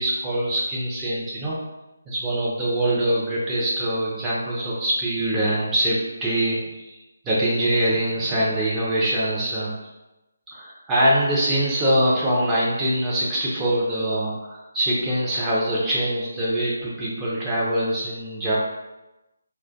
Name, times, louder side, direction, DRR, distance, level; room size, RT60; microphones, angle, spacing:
voice 1, 0.0-1.5 2.1-6.8 7.2-9.7 10.5-18.5, right 1 dB, 10° right, -8 dB, 0.5 m, -23 dB
2.4 x 2.2 x 2.5 m, 0.99 s
figure-of-eight pair, 150°, 0 cm